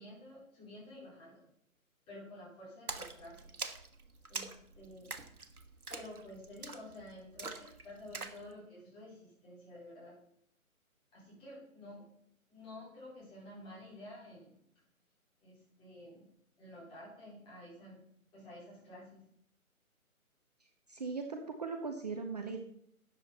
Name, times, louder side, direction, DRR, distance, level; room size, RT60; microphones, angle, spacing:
voice 1, 0.0-1.5 2.1-3.6 4.3-5.2 5.9-10.1 11.1-12.0 12.5-14.6 15.4-16.3 16.6-18.0 18.3-19.2, left 1 dB, 10° left, -7 dB, 4.7 m, -51 dB
Splash splatter, 2.9-8.4, right 4 dB, 85° right, 1.3 m, -44 dB
voice 2, 20.9-22.6, right 4 dB, 30° right, 5 dB, 0.8 m, -39 dB
13.0 x 8.8 x 4.1 m, 0.70 s
figure-of-eight pair, 150°, 43 cm